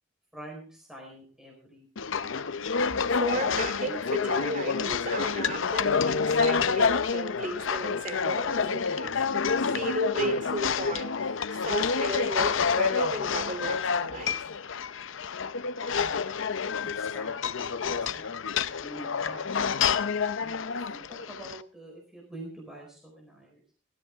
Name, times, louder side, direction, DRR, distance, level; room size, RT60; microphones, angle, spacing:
voice 1, 0.3-2.3 16.6-17.3 17.8-19.4 20.4-23.6, right 1 dB, 5° right, -2 dB, 4.3 m, -46 dB
sound 1, 2.0-21.6, left 5 dB, 70° left, 0.6 m, -28 dB
voice 2, 2.8-9.3 9.5-14.4, right 2 dB, 40° right, 7 dB, 3.0 m, -34 dB
19.5 x 13.0 x 3.5 m, 0.40 s
head